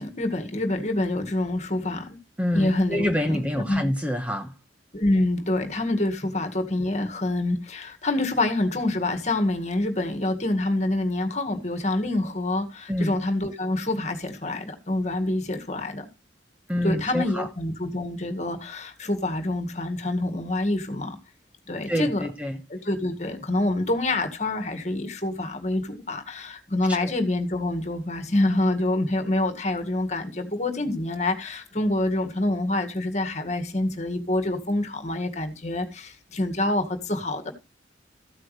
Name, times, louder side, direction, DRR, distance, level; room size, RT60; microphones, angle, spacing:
voice 1, 0.0-2.2 2.5-3.4 3.7-3.8 4.9-16.1 16.8-21.2 21.7-22.3 22.7-37.5, left 2 dB, 40° left, 2.1 m, -26 dB
voice 2, 2.4-4.5 12.9-13.2 16.7-17.5 21.9-22.6 27.0-27.1, left 1 dB, 5° right, 1.1 m, -27 dB
14.5 x 8.6 x 3.3 m
head